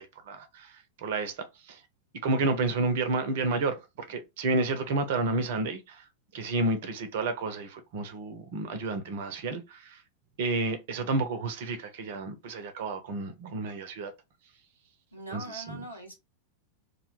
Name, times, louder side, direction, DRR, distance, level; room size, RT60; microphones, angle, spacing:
voice 1, 0.0-1.8 2.2-6.0 6.3-10.0 10.4-14.1 15.3-15.8, right 3 dB, 55° right, 0.5 m, -31 dB
voice 2, 15.1-16.1, right 2 dB, 90° left, 0.9 m, -41 dB
2.1 x 2.1 x 3.0 m
figure-of-eight pair, 90°, 0 cm